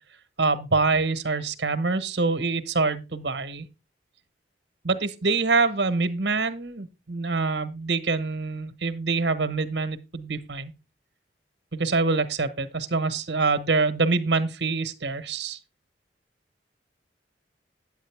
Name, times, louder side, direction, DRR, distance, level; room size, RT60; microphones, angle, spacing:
voice 1, 0.4-3.7 4.8-10.7 11.7-15.6, right 3 dB, 70° right, 1.1 m, -25 dB
9.1 x 8.5 x 3.4 m
head